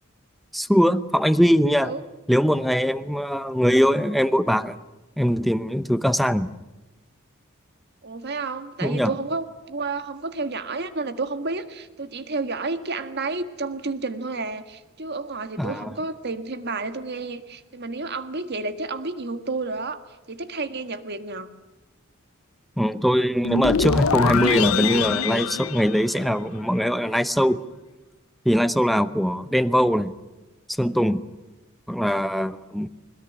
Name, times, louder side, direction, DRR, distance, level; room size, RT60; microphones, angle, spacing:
voice 1, 0.5-1.9 2.3-4.8 5.2-6.5 8.8-9.1 15.6-15.9 22.8-27.6 28.4-30.1 30.8-31.2 31.9-32.9, equal, ahead, 12 dB, 0.8 m, -21 dB
voice 2, 8.0-20.0 20.3-21.5, right 3 dB, 55° right, 10 dB, 1.7 m, -31 dB
sound 1, 23.4-26.7, left 5 dB, 85° left, 0.7 m, -24 dB
22.0 x 20.5 x 9.9 m, 1.1 s
head